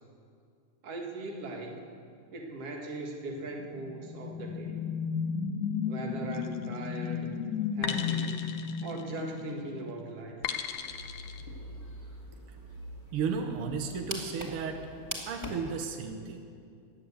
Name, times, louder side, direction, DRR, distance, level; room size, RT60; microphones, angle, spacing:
voice 1, 0.8-1.8 2.3-4.8 5.9-7.3 7.8-8.5 8.8-10.4, right 2 dB, 50° right, 1 dB, 2.3 m, -39 dB
sound 1, 3.6-10.1, left 6 dB, 70° left, 2.0 m, -34 dB
sound 2, 6.3-6.7 7.8-9.5 10.4-11.4, left 8 dB, 85° left, 1.4 m, -37 dB
sound 3, 10.6-15.8, equal, 10° right, 1.5 m, -44 dB
voice 2, 13.1-14.8 15.3-16.5, right 5 dB, 80° right, 4 dB, 1.2 m, -33 dB
16.0 x 10.5 x 8.2 m, 2.3 s
omnidirectional pair, 4.0 m